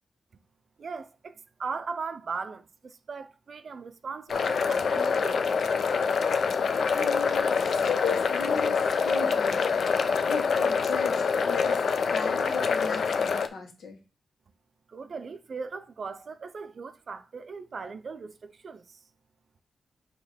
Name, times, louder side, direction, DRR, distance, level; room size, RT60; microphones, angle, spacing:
voice 1, 0.8-1.3 1.6-5.6 14.9-19.0, right 5 dB, 50° right, 0.5 m, -38 dB
sound 1, 4.3-13.5, left 5 dB, 65° left, 0.5 m, -25 dB
voice 2, 6.9-10.0 10.3-11.8 12.1-14.0, left 5 dB, 80° left, 1.5 m, -36 dB
6.3 x 3.0 x 5.0 m
wide cardioid pair, 135°, 0 cm